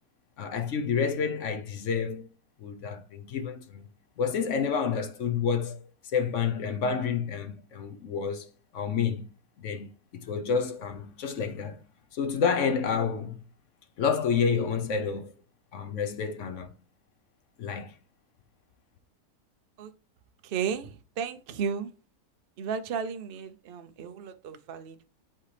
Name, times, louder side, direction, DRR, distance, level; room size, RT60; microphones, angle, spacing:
voice 1, 0.4-2.3 2.6-3.8 4.2-8.5 8.7-9.3 9.6-11.8 12.1-13.4 14.0-15.3 15.7-16.8 17.6-18.0, left 6 dB, 60° left, 1.0 m, -29 dB
voice 2, 20.4-21.9 22.6-25.1, right 6 dB, 55° right, 0.6 m, -34 dB
7.5 x 4.2 x 3.3 m
omnidirectional pair, 1.6 m